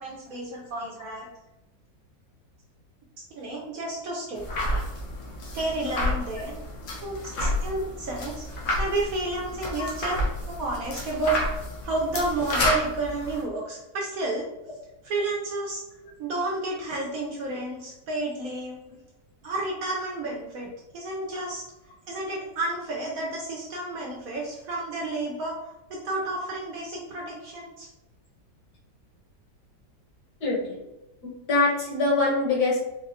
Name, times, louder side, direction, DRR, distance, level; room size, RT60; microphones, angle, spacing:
voice 1, 0.0-1.3 3.3-4.5 5.5-6.5 7.0-10.2 10.5-14.5 15.0-15.8 16.2-18.8 19.4-21.6 22.1-25.6 25.9-27.9, right 2 dB, 70° right, -2 dB, 0.9 m, -31 dB
sound 1, 4.4-13.4, left 1 dB, 85° left, 1.4 m, -30 dB
voice 2, 30.4-30.8 31.5-32.8, left 3 dB, 70° left, -3 dB, 1.4 m, -24 dB
4.0 x 2.4 x 2.5 m, 0.92 s
omnidirectional pair, 1.9 m